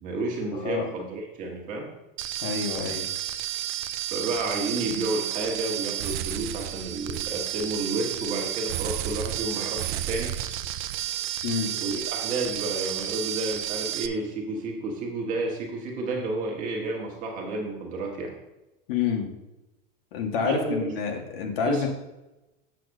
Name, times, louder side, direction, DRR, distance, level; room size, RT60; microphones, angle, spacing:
voice 1, 0.0-1.9 4.1-10.3 11.8-18.3 20.4-20.9 21.7-21.9, right 2 dB, 25° right, 0 dB, 1.4 m, -31 dB
voice 2, 0.5-0.9 2.4-3.0 11.4-11.7 18.9-19.3 20.1-21.9, left 6 dB, 65° left, 2 dB, 1.7 m, -28 dB
sound 1, 2.2-14.1, right 12 dB, 55° right, 0.5 m, -31 dB
7.4 x 4.1 x 6.5 m, 0.99 s
supercardioid pair, 175°, 30 cm